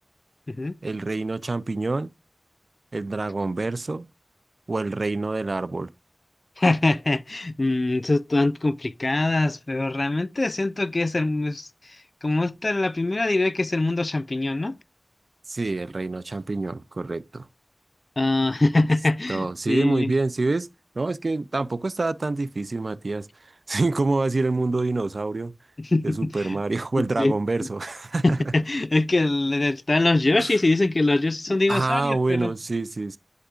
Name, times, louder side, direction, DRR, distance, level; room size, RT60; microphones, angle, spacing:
voice 1, 0.8-2.1 2.9-4.1 4.7-5.9 15.5-17.5 19.3-20.7 21.0-25.6 26.0-28.4 30.4-30.5 31.5-33.2, right 3 dB, 85° right, 0.3 m, -26 dB
voice 2, 6.6-11.7 12.2-14.8 18.2-20.1 25.8-26.6 27.0-27.3 28.2-32.5, left 2 dB, 60° left, 0.4 m, -23 dB
10.5 x 4.9 x 2.4 m
wide cardioid pair, 40°, 0 cm